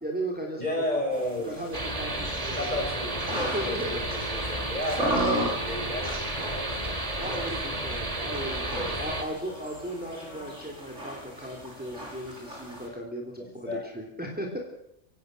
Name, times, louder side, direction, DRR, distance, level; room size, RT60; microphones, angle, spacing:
voice 1, 0.0-1.2 1.5-4.0 7.2-14.6, right 1 dB, 5° right, 0 dB, 3.1 m, -37 dB
voice 2, 0.6-1.5 2.6-6.8 7.2-7.5 8.6-8.9 13.4-13.8, left 1 dB, 35° left, 1 dB, 6.8 m, -33 dB
sound 1, 1.1-12.9, right 1 dB, 90° right, 7.4 m, -36 dB
sound 2, 1.7-9.2, right 1 dB, 30° right, 2.6 m, -32 dB
25.5 x 16.0 x 6.6 m, 0.79 s
omnidirectional pair, 1.2 m